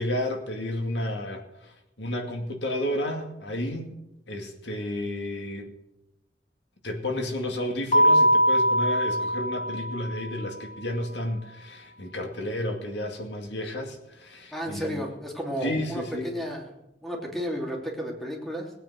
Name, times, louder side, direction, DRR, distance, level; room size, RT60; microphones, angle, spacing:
voice 1, 0.0-3.9 4.3-5.7 6.8-15.0 15.6-16.3, left 1 dB, 70° left, 4 dB, 2.4 m, -32 dB
Keyboard (musical), 7.9-10.5, equal, 40° left, 1.9 m, -22 dB
voice 2, 14.5-16.7 17.0-18.7, equal, ahead, -1 dB, 3.1 m, -32 dB
19.5 x 9.1 x 6.3 m, 0.89 s
head